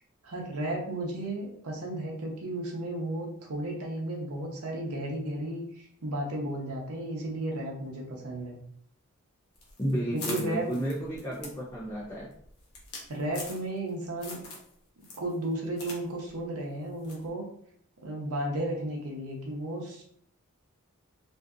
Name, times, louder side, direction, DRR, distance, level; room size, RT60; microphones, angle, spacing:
voice 1, 0.2-8.6 10.1-10.7 13.1-14.4 15.0-17.5 18.0-20.0, right 1 dB, 80° right, -1 dB, 0.7 m, -34 dB
sound 1, 9.6-13.9 14.2-14.7 15.0-16.0 16.3-16.4 17.0-17.3, left 3 dB, 70° left, 0.8 m, -42 dB
voice 2, 9.8-12.3, equal, 20° left, -9 dB, 0.6 m, -32 dB
2.6 x 2.5 x 2.3 m, 0.67 s
head